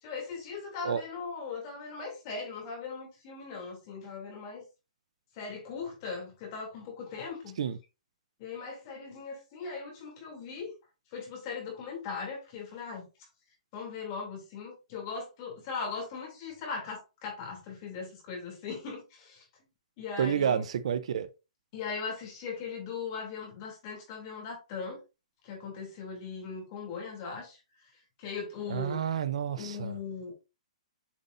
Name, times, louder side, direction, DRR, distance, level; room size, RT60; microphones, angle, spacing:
voice 1, 0.0-4.6 5.3-7.6 8.4-10.7 11.1-13.1 13.7-19.4 20.0-20.6 21.7-25.0 25.4-27.6 28.2-29.0 29.6-30.3, left 5 dB, 30° left, 2.9 m, -39 dB
voice 2, 20.2-21.3 28.7-29.9, right 8 dB, 55° right, 0.6 m, -29 dB
7.2 x 5.4 x 2.6 m
hypercardioid pair, 170°, 4 cm